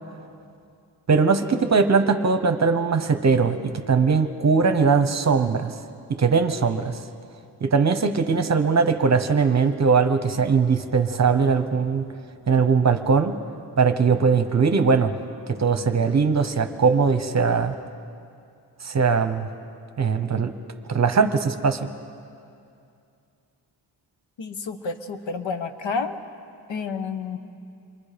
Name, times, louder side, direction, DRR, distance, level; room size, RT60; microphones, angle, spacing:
voice 1, 1.1-5.8 6.1-7.0 7.6-12.0 12.5-13.3 13.8-15.1 15.5-17.7 18.8-19.5 20.0-20.5 20.9-21.9, right 5 dB, 35° right, 9 dB, 0.9 m, -20 dB
voice 2, 24.4-26.2 26.7-27.4, left 5 dB, 75° left, 8 dB, 1.3 m, -30 dB
28.0 x 23.5 x 5.1 m, 2.5 s
wide cardioid pair, 170°, 45 cm